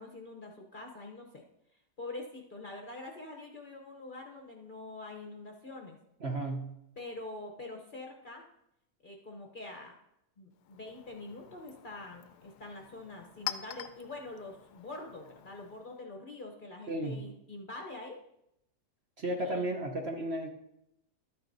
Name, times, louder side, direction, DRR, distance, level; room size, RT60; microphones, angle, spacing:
voice 1, 0.0-1.4 2.0-6.0 7.0-8.5 9.0-10.0 10.4-18.2 19.4-19.8, left 2 dB, 40° left, 1 dB, 0.9 m, -45 dB
voice 2, 6.2-6.7 16.9-17.2 19.2-20.5, right 1 dB, 50° right, 1 dB, 1.0 m, -33 dB
Chink clink, 10.5-16.0, left 10 dB, 85° left, 1.1 m, -46 dB
12.5 x 9.6 x 2.7 m, 0.83 s
omnidirectional pair, 1.7 m